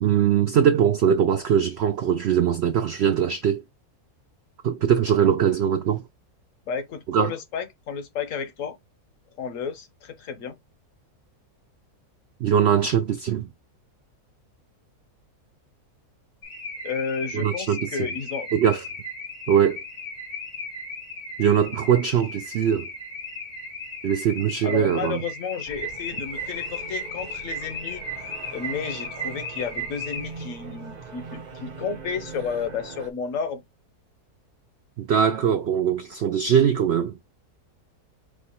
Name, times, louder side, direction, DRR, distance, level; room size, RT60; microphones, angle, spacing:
voice 1, 0.0-3.6 4.6-6.0 7.1-7.3 12.4-13.5 17.3-17.9 18.5-18.8 19.5-19.8 21.4-22.9 24.0-25.2 35.0-37.2, right 8 dB, 85° right, 0.5 m, -21 dB
voice 2, 6.7-8.8 9.4-10.6 16.8-18.5 24.6-28.0 28.5-33.6, left 6 dB, 65° left, 1.0 m, -32 dB
Car / Alarm, 16.4-30.6, left 1 dB, 90° left, 2.5 m, -36 dB
sound 1, 25.7-33.1, right 4 dB, 40° right, 0.7 m, -41 dB
4.8 x 2.2 x 4.2 m
omnidirectional pair, 1.7 m